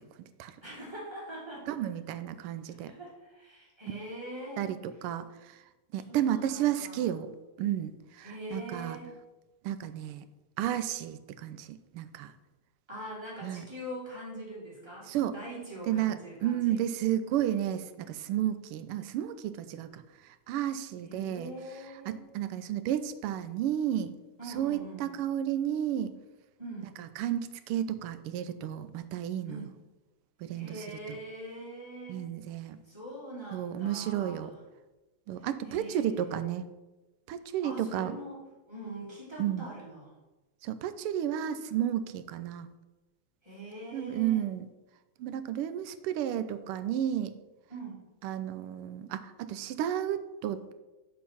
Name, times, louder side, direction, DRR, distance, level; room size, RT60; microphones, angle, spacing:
voice 1, 0.6-1.7 2.9-4.7 6.0-7.1 8.2-9.1 12.9-16.8 21.0-22.2 24.4-25.2 26.6-27.0 29.5-29.7 30.5-32.3 32.6-34.5 35.4-36.2 37.6-38.4 38.7-40.1 43.4-44.4 47.7-48.0, right 1 dB, 10° right, -6 dB, 2.6 m, -43 dB
voice 2, 1.7-2.9 4.6-5.6 5.9-9.0 9.6-10.2 10.6-12.3 13.4-13.6 15.1-15.4 15.9-21.5 22.1-24.2 24.5-26.2 27.0-29.7 30.4-31.2 32.1-32.8 33.5-34.5 35.3-36.6 37.3-38.2 39.4-39.7 40.6-42.7 43.9-44.7 45.2-47.3 48.2-50.7, right 11 dB, 85° right, 12 dB, 1.5 m, -32 dB
7.3 x 4.5 x 5.7 m, 1.1 s
omnidirectional pair, 2.4 m